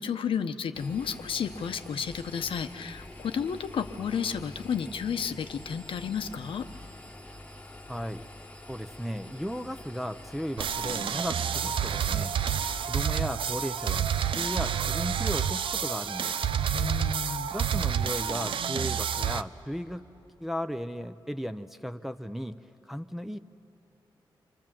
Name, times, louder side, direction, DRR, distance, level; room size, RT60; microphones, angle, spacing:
voice 1, 0.0-6.7 16.7-17.5, left 7 dB, 80° left, 9 dB, 1.0 m, -32 dB
Engine, 0.7-12.9, left 1 dB, 15° left, 1.3 m, -46 dB
voice 2, 7.9-8.2 8.7-12.3 12.9-16.4 17.5-20.1 20.4-22.6 22.9-23.4, equal, 5° right, 7 dB, 0.7 m, -35 dB
sound 1, 10.6-19.4, right 8 dB, 75° right, 0.6 m, -29 dB
26.0 x 25.5 x 7.6 m, 3.0 s
cardioid pair, 80°, 9 cm